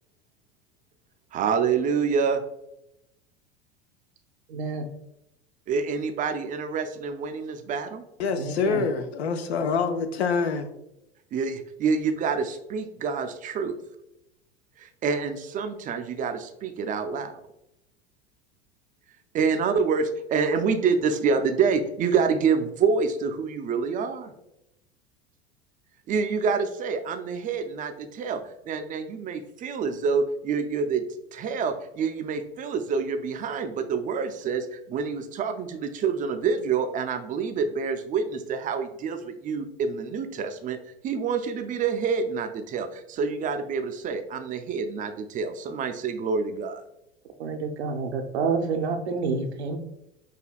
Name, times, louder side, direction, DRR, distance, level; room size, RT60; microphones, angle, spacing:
voice 1, 1.3-2.4 5.7-8.0 11.3-13.8 14.8-17.4 19.3-24.3 26.1-31.0 31.3-40.8 41.0-46.8, right 5 dB, 25° right, 8 dB, 0.4 m, -27 dB
voice 2, 4.5-4.9 8.3-8.9 47.4-49.8, right 4 dB, 75° right, 5 dB, 0.7 m, -28 dB
voice 3, 8.2-10.7, left 5 dB, 75° left, 8 dB, 0.6 m, -26 dB
5.9 x 2.8 x 2.3 m, 0.86 s
hypercardioid pair, 85°, 32 cm